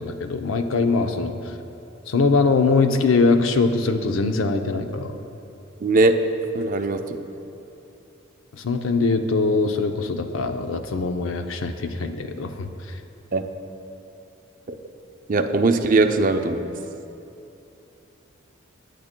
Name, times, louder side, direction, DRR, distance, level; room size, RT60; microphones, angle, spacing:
voice 1, 0.0-1.6 2.1-5.2 8.5-13.0, left 3 dB, 80° left, 6 dB, 0.6 m, -22 dB
voice 2, 5.8-6.1 6.5-7.2 13.3-13.5 14.7-14.8 15.3-16.7, right 3 dB, 45° right, 6 dB, 0.5 m, -20 dB
19.5 x 9.3 x 2.2 m, 2.8 s
head